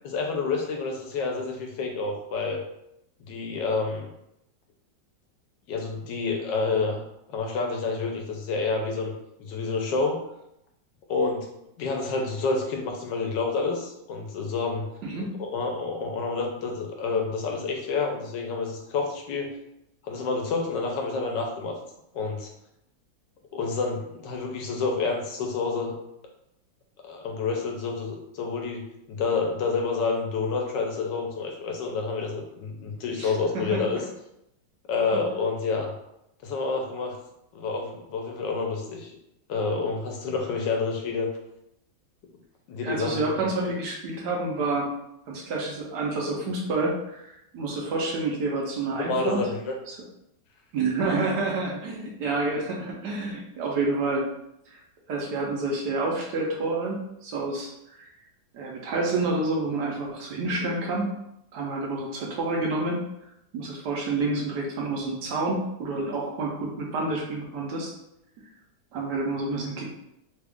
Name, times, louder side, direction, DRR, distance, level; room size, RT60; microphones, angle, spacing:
voice 1, 0.0-2.6 3.3-4.1 5.7-7.0 7.3-9.1 9.4-10.2 11.1-11.5 11.8-14.9 15.4-19.5 20.0-21.8 22.1-22.5 23.5-26.0 27.0-34.0 34.9-35.9 36.4-37.1 37.5-39.1 39.5-41.3 42.7-43.2 43.6-43.7 49.0-49.7, left 4 dB, 75° left, 2 dB, 1.2 m, -28 dB
voice 2, 33.1-34.0 35.1-35.2 42.8-44.9 45.3-49.4 49.9-50.0 50.7-54.3 54.7-54.8 55.1-57.7 58.0-58.1 58.5-61.1 61.5-63.0 63.5-67.9 68.9-69.9, right 3 dB, 70° right, -2 dB, 1.1 m, -28 dB
3.3 x 2.3 x 3.4 m, 0.81 s
omnidirectional pair, 2.0 m